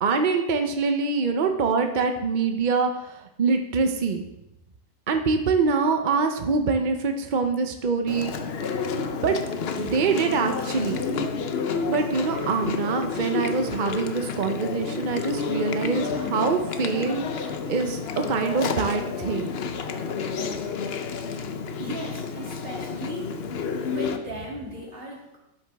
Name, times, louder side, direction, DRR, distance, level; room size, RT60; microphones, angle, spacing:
voice 1, 0.0-4.2 5.1-8.3 9.2-9.4 9.8-11.0 11.9-18.0 18.3-19.5, right 4 dB, 70° right, 5 dB, 0.4 m, -24 dB
Chewing mastication, 8.1-24.2, left 5 dB, 70° left, 0.6 m, -30 dB
voice 2, 21.8-23.5 23.8-25.4, equal, 30° right, -4 dB, 2.7 m, -37 dB
12.5 x 7.1 x 3.5 m, 0.88 s
omnidirectional pair, 1.9 m